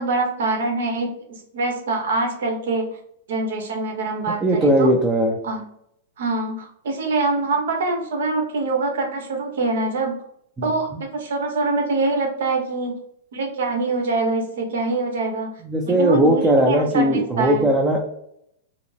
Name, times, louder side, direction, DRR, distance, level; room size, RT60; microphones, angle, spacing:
voice 1, 0.0-3.0 3.3-4.9 5.4-5.6 6.2-10.2 10.6-13.0 13.3-15.5 15.8-17.7, right 3 dB, 75° right, 2 dB, 1.1 m, -24 dB
voice 2, 4.4-5.4 15.6-18.0, right 1 dB, 10° right, 1 dB, 0.5 m, -18 dB
4.8 x 2.0 x 3.3 m, 0.72 s
hypercardioid pair, 145°, 0 cm